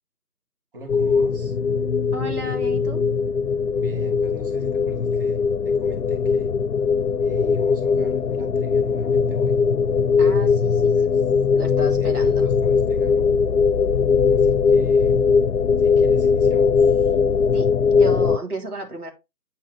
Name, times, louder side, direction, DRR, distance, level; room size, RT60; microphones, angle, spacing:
voice 1, 0.7-1.5 3.8-6.5 7.2-9.6 10.4-11.2 11.8-13.3 14.3-15.2 15.8-17.2, right 2 dB, 35° right, 2.7 m, -42 dB
sound 1, 0.9-18.4, left 5 dB, 65° left, 0.6 m, -20 dB
voice 2, 2.1-3.0 10.2-11.1 11.5-12.5 17.5-19.1, right 2 dB, 70° right, 3.4 m, -33 dB
9.6 x 4.9 x 3.3 m
figure-of-eight pair, 160°, 47 cm